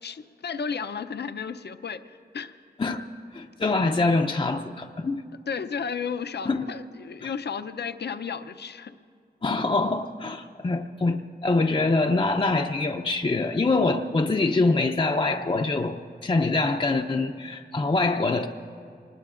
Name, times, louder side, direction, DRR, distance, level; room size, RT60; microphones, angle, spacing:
voice 1, 0.0-2.5 5.5-8.9, left 6 dB, 75° left, 9 dB, 0.6 m, -33 dB
voice 2, 3.3-5.2 6.4-6.7 7.2-7.3 9.4-18.5, left 3 dB, 30° left, 3 dB, 0.5 m, -24 dB
25.5 x 20.5 x 2.5 m, 2.4 s
wide cardioid pair, 70°, 18 cm